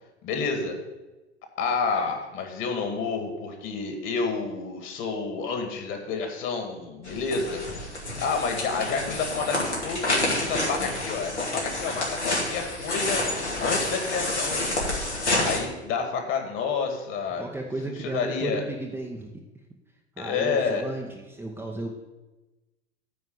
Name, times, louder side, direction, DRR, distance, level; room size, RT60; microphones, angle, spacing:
voice 1, 0.2-0.8 1.6-7.6 8.2-13.2 13.6-14.7 15.4-17.5 17.8-18.6 20.2-20.8, left 5 dB, 35° left, 4 dB, 2.1 m, -29 dB
sound 1, 7.0-15.6, left 2 dB, 85° left, 2.7 m, -28 dB
voice 2, 17.4-19.3 20.2-21.9, right 2 dB, 5° right, -1 dB, 0.9 m, -34 dB
9.7 x 4.7 x 7.9 m, 1.1 s
figure-of-eight pair, 85°, 33 cm